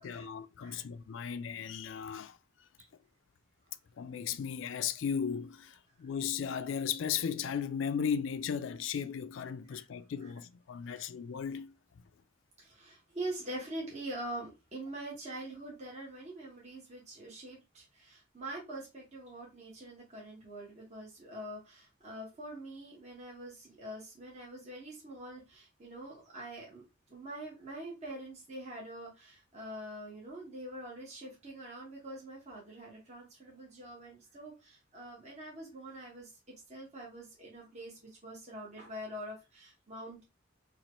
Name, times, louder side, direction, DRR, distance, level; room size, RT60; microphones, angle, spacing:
voice 1, 0.0-2.4 4.0-11.7, left 7 dB, 70° left, 0.4 m, -36 dB
voice 2, 12.6-26.8 27.1-36.3 36.7-40.2, right 1 dB, 35° right, 1.2 m, -44 dB
4.2 x 2.5 x 3.0 m
head